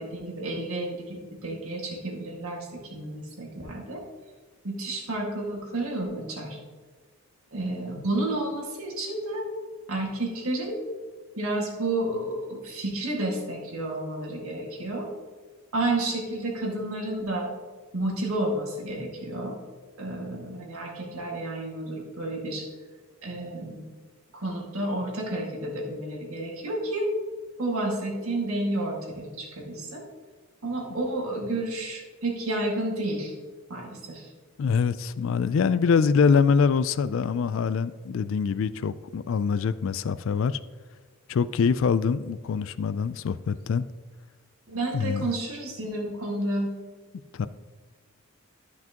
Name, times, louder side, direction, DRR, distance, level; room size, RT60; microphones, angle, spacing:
voice 1, 0.0-4.0 4.6-6.6 7.5-9.5 9.9-10.8 11.4-15.1 15.7-17.5 17.9-19.6 20.0-22.6 23.2-23.8 24.3-27.1 27.6-30.0 30.6-33.3 33.7-34.3 44.7-46.7, right 1 dB, 75° right, 2.0 m, -31 dB
voice 2, 34.6-40.6 41.3-43.9 44.9-45.3 47.3-47.5, left 5 dB, 60° left, 0.3 m, -24 dB
13.0 x 5.9 x 2.9 m
head